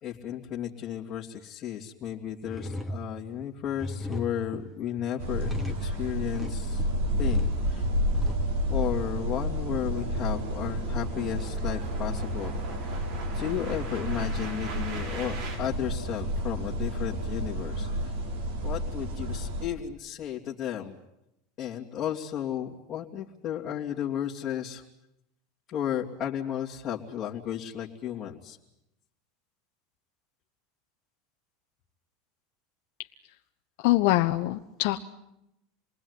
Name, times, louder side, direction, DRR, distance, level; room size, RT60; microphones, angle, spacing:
voice 1, 0.0-6.9 7.2-7.9 8.7-12.5 12.8-13.0 13.3-18.2 18.6-21.0 21.6-24.8 25.7-28.6, left 10 dB, 35° left, -4 dB, 2.8 m, -34 dB
sound 1, 2.0-2.1 2.4-8.4, left 1 dB, 5° right, 2.4 m, -38 dB
sound 2, 5.2-19.7, equal, 80° right, 6.0 m, -30 dB
sound 3, 6.1-15.6, right 4 dB, 55° right, 7.0 m, -43 dB
voice 2, 33.8-35.0, left 17 dB, 65° left, 5 dB, 1.1 m, -24 dB
27.5 x 20.0 x 9.8 m, 0.84 s
supercardioid pair, 125°, 0 cm